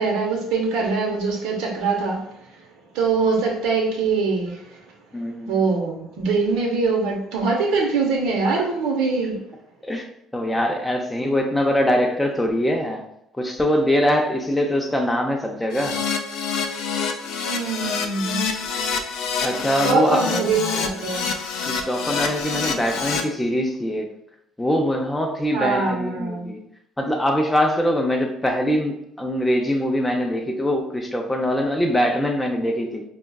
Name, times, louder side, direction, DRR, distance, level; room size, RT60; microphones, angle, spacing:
voice 1, 0.0-2.3 2.9-4.6 5.5-9.4 17.4-18.5 19.8-21.3 25.5-26.5, right 4 dB, 75° right, 0 dB, 0.8 m, -23 dB
voice 2, 5.1-5.5 9.8-10.0 10.3-13.0 13.4-16.0 19.4-20.5 21.6-24.1 24.6-26.6 27.0-33.0, equal, 10° left, 1 dB, 0.6 m, -23 dB
Keyboard (musical), 15.7-23.2, left 6 dB, 70° left, 0.4 m, -27 dB
4.9 x 2.3 x 2.3 m, 0.79 s
hypercardioid pair, 65°, 0 cm